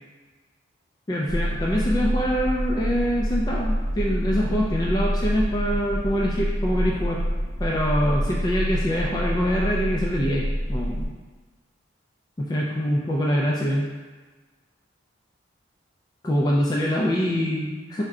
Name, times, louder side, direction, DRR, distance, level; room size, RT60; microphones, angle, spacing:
voice 1, 1.1-7.2 7.6-11.1 12.4-13.9 16.2-18.0, equal, 20° left, -4 dB, 0.3 m, -24 dB
sound 1, 1.3-11.1, equal, 65° left, 0.7 m, -27 dB
4.6 x 2.1 x 3.6 m, 1.3 s
head